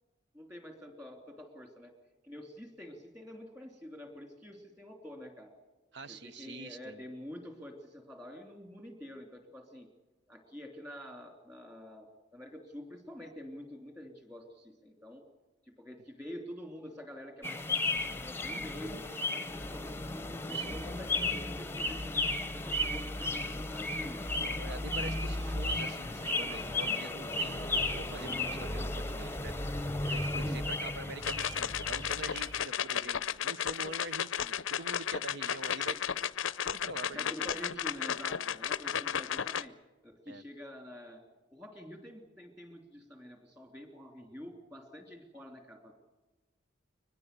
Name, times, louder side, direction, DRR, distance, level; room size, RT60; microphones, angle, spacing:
voice 1, 0.3-1.9 2.2-5.5 6.1-9.9 10.3-15.2 15.6-19.0 19.3-20.1 20.5-24.2 30.4-30.6 37.1-39.8 40.0-41.2 41.5-45.9, left 1 dB, 15° right, 3 dB, 3.1 m, -47 dB
voice 2, 5.9-7.0 20.5-20.8 24.3-36.0 36.6-37.5 40.3-40.4, right 2 dB, 60° right, 12 dB, 1.1 m, -45 dB
sound 1, 17.4-32.6, left 2 dB, 10° left, 0.9 m, -34 dB
sound 2, 31.2-39.6, left 8 dB, 85° left, 0.6 m, -34 dB
23.5 x 20.5 x 6.8 m, 1.1 s
head